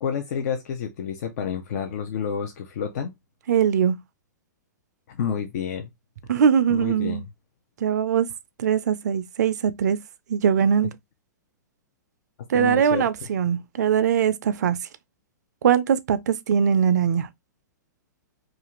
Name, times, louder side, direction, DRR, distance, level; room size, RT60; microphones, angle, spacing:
voice 1, 0.0-3.1 5.1-5.9 6.7-7.3 12.5-13.1, left 7 dB, 60° left, 0.5 m, -29 dB
voice 2, 3.5-4.0 6.3-7.2 7.8-8.3 8.6-10.0 10.3-10.9 12.5-14.8 15.6-17.3, right 8 dB, 65° right, 0.4 m, -21 dB
2.5 x 2.4 x 2.9 m
hypercardioid pair, 120°, 10 cm